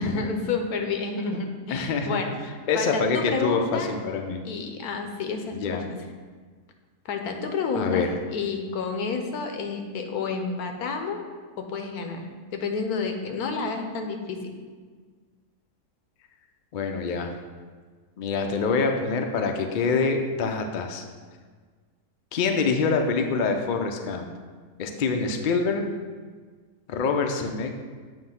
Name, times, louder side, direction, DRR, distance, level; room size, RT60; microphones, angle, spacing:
voice 1, 0.0-2.4 2.7-4.0 4.4-5.8 7.0-8.0 8.3-11.2 11.6-14.5, left 4 dB, 85° left, 4 dB, 1.2 m, -30 dB
voice 2, 1.7-2.2 2.7-4.4 5.5-5.9 7.7-8.1 16.7-17.3 18.2-21.0 22.3-24.3 24.8-25.8 26.9-27.8, left 4 dB, 70° left, 4 dB, 0.4 m, -25 dB
7.4 x 2.8 x 5.6 m, 1.5 s
omnidirectional pair, 1.6 m